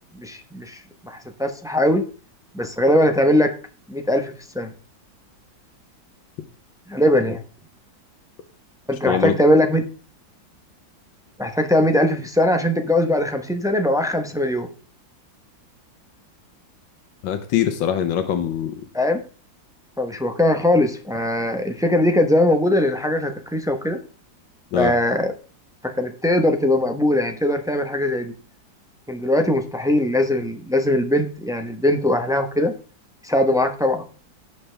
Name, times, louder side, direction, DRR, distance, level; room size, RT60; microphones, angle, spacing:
voice 1, 0.1-2.0 2.5-3.5 3.9-4.7 6.9-7.4 8.9-9.8 11.4-14.7 18.9-19.2 20.0-24.0 24.7-25.3 26.0-28.3 29.1-32.7 33.2-34.0, left 1 dB, 5° right, 5 dB, 0.3 m, -20 dB
voice 2, 17.2-18.7 24.7-24.9, left 9 dB, 90° left, 7 dB, 1.7 m, -22 dB
17.0 x 5.7 x 3.4 m, 0.38 s
omnidirectional pair, 2.0 m